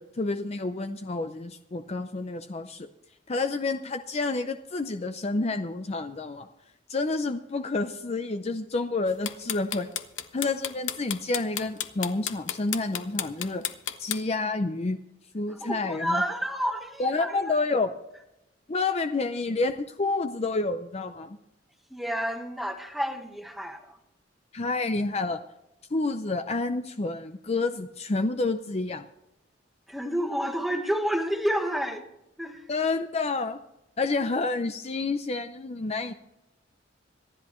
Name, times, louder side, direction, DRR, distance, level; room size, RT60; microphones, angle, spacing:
voice 1, 0.0-2.9 3.3-6.5 6.9-9.9 10.3-13.6 14.0-15.0 15.3-16.2 17.0-17.9 18.7-21.4 24.5-25.4 25.9-29.0 32.7-33.6 34.0-36.1, left 3 dB, 35° left, 0.6 m, -29 dB
sound 1, 9.1-14.2, left 10 dB, 85° left, 0.9 m, -31 dB
voice 2, 15.5-17.5 21.9-24.0 29.9-32.0 32.4-32.7, equal, ahead, 1.3 m, -30 dB
26.0 x 10.5 x 3.1 m
head